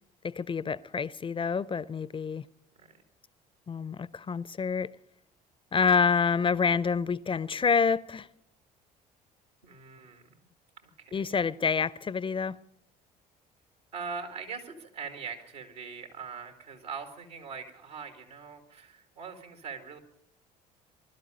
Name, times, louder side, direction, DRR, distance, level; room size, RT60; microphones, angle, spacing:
voice 1, 0.2-2.5 3.7-4.9 5.7-8.3 11.1-12.6, left 5 dB, 25° left, 0.5 m, -27 dB
voice 2, 9.6-10.3 10.8-11.2 13.9-20.0, right 5 dB, 80° right, 1.9 m, -42 dB
21.0 x 12.0 x 5.3 m
hypercardioid pair, 55°, 21 cm